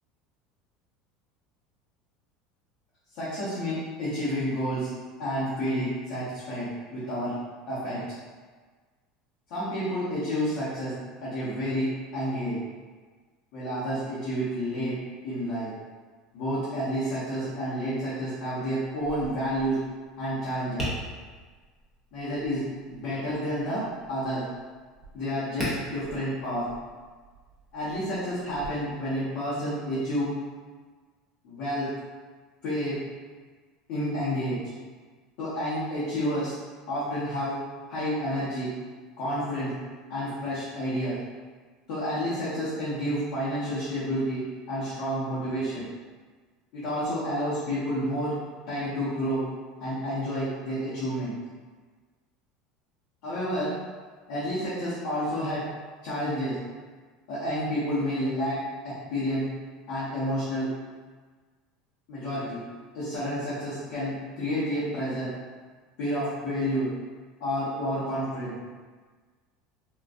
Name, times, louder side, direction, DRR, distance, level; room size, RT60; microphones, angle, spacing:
voice 1, 3.1-4.9 5.2-7.3 7.7-8.0 9.5-10.9 11.2-12.6 13.5-15.0 15.2-15.7 16.3-19.7 20.2-20.9 22.1-24.4 25.1-26.6 27.7-30.3 31.4-31.9 32.6-33.0 33.9-34.6 35.4-36.5 36.9-37.6 37.9-38.7 39.2-39.7 40.1-41.2 41.9-44.4 44.7-45.8 46.7-48.3 48.7-49.4 49.8-51.3 53.2-53.7 54.3-55.6 56.0-56.6 57.3-58.6 58.8-59.4 59.9-60.7 62.1-62.6 62.9-65.3 66.0-66.9 67.4-68.5, equal, 60° left, -11 dB, 1.0 m, -30 dB
Tap, 19.0-28.7, left 1 dB, 15° left, 0.7 m, -41 dB
3.7 x 2.3 x 2.5 m, 1.5 s
cardioid pair, 175°, 0 cm